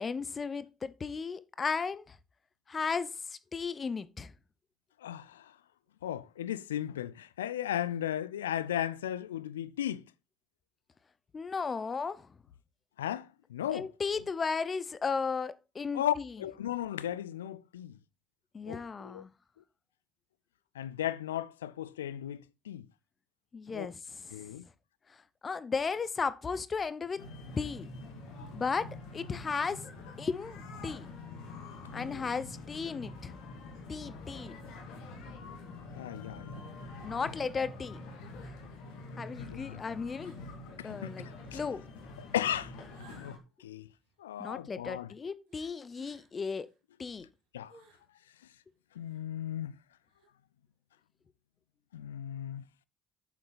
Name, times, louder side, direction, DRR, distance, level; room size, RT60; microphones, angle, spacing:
voice 1, 0.0-2.2 2.7-4.3 11.3-12.3 13.7-16.3 18.5-19.3 23.5-24.4 25.4-27.2 27.6-27.9 28.5-29.8 30.2-31.1 31.9-33.3 33.9-34.6 37.0-38.0 39.2-40.3 40.8-41.3 41.5-41.8 44.4-46.7 47.0-47.3, left 5 dB, 35° left, 0.8 m, -35 dB
voice 2, 5.0-5.5 6.0-10.0 13.0-13.9 15.9-17.9 18.7-19.2 20.8-22.9 23.7-23.9 24.3-24.7 31.9-32.2 35.9-36.6 39.4-39.8 40.8-41.6 42.3-42.7 43.0-43.9 44.2-45.1 47.5-47.7 49.0-49.7 51.9-52.6, left 11 dB, 85° left, 0.4 m, -36 dB
sound 1, 27.2-43.4, left 3 dB, 70° left, 2.3 m, -46 dB
sound 2, 35.5-35.7 36.1-36.2 37.8-37.9 38.6-38.7 40.2-40.6 40.9-41.3 42.9-44.6 45.5-46.8 47.2-48.1 48.5-48.6 48.9-49.3 50.0-50.3, right 4 dB, 75° right, 3.5 m, -63 dB
8.6 x 7.1 x 4.0 m
hypercardioid pair, 50°, 0 cm